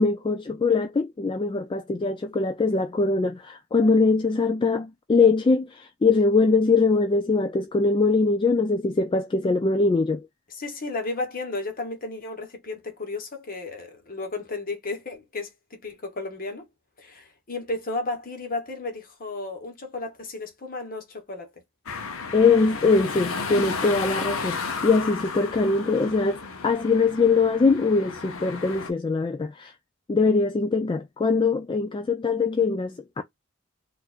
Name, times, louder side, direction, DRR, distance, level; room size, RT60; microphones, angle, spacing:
voice 1, 0.0-10.3 22.3-29.7 30.1-33.2, left 4 dB, 25° left, 0.3 m, -22 dB
voice 2, 10.5-16.7 17.0-21.5, left 2 dB, 45° left, 1.1 m, -33 dB
sound 1, 21.9-28.9, left 4 dB, 70° left, 0.8 m, -33 dB
4.5 x 2.6 x 2.4 m
head